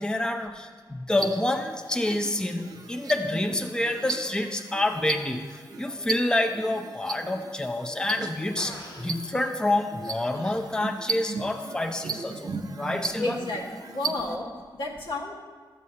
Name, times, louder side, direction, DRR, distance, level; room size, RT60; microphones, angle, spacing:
voice 1, 0.0-12.5 12.8-13.4, left 1 dB, 10° left, 5 dB, 0.5 m, -28 dB
sound 1, 1.2-14.4, right 4 dB, 50° right, 0.6 m, -37 dB
Fart, 8.6-9.1 10.4-10.6, left 1 dB, 55° left, 1.4 m, -42 dB
voice 2, 13.2-15.4, left 2 dB, 85° left, -5 dB, 1.6 m, -32 dB
12.0 x 7.5 x 2.8 m, 1.5 s
wide cardioid pair, 85°, 8 cm